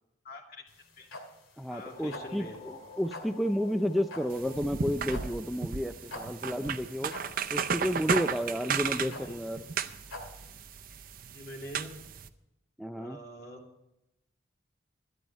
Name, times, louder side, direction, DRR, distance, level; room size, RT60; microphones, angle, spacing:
voice 1, 0.2-1.1 1.7-2.6 8.9-9.4 11.3-11.9 12.9-13.6, equal, 50° left, 1 dB, 2.5 m, -45 dB
sound 1, 0.7-10.6, left 1 dB, 90° left, 2.4 m, -46 dB
sound 2, 1.6-6.2, left 4 dB, 30° left, 1.4 m, -50 dB
voice 2, 1.6-7.1 7.5-9.6 12.8-13.2, equal, ahead, 7 dB, 0.3 m, -31 dB
sound 3, 4.3-12.3, right 6 dB, 45° right, 0.6 m, -35 dB
12.5 x 12.0 x 5.3 m, 0.89 s
head